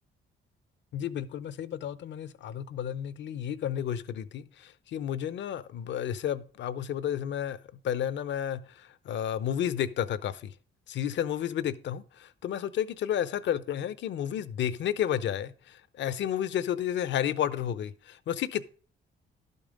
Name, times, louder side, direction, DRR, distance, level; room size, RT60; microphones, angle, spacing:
voice 1, 0.9-7.6 7.8-10.5 10.9-18.6, left 10 dB, 65° left, 0.7 m, -32 dB
11.5 x 5.5 x 5.1 m
cardioid pair, 90°, 20 cm